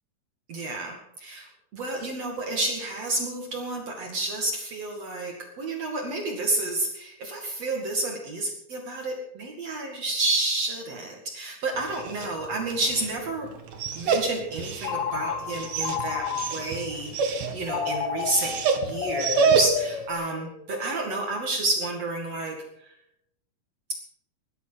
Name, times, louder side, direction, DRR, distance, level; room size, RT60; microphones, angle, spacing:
voice 1, 0.5-13.5 13.9-20.5 20.8-22.9, right 2 dB, 55° right, 1 dB, 3.3 m, -30 dB
Dog, 11.7-20.0, right 5 dB, 80° right, 3.2 m, -29 dB
Telephone, 14.8-16.8 17.7-20.7, left 7 dB, 65° left, 2.4 m, -31 dB
19.0 x 12.0 x 5.9 m, 0.78 s
omnidirectional pair, 3.6 m